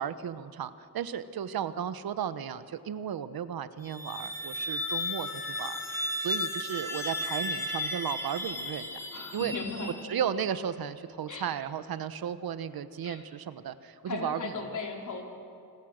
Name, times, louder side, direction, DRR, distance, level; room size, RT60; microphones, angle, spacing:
voice 1, 0.0-8.9 9.3-9.5 10.1-14.5, right 8 dB, 70° right, 13 dB, 1.0 m, -34 dB
sound 1, 3.8-10.4, left 1 dB, 5° left, 2.5 m, -34 dB
voice 2, 9.1-9.9 11.3-11.5 13.0-13.2 14.0-15.2, left 4 dB, 50° left, 1 dB, 4.0 m, -37 dB
28.5 x 20.5 x 6.5 m, 2.6 s
cardioid pair, 120°, 38 cm